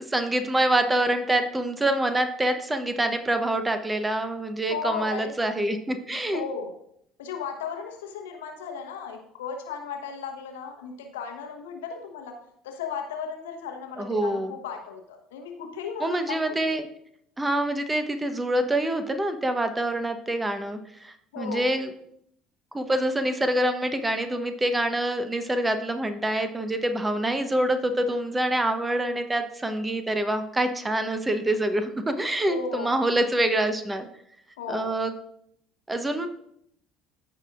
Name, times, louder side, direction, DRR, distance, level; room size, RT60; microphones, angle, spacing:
voice 1, 0.0-6.4 14.0-14.5 16.0-16.9 17.4-21.9 22.7-34.1 34.7-35.1 35.9-36.3, right 1 dB, 15° right, 8 dB, 1.0 m, -26 dB
voice 2, 4.7-5.3 6.3-6.7 7.2-12.3 12.6-16.4 16.6-16.7 21.3-21.7 32.5-33.0 34.6-34.9, left 6 dB, 75° left, 4 dB, 1.0 m, -35 dB
14.5 x 5.0 x 2.5 m, 0.72 s
figure-of-eight pair, 60°, 0 cm